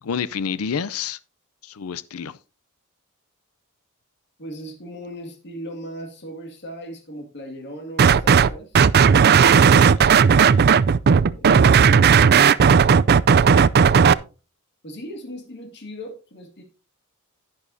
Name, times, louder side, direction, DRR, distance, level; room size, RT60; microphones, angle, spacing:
voice 1, 0.0-1.2 1.6-2.4 10.0-10.6, left 6 dB, 75° left, 0.5 m, -29 dB
voice 2, 4.4-8.8 14.8-16.6, equal, 55° left, 2.2 m, -38 dB
sound 1, 8.0-8.5 8.7-14.1, right 6 dB, 45° right, 0.4 m, -14 dB
11.0 x 10.5 x 2.7 m
head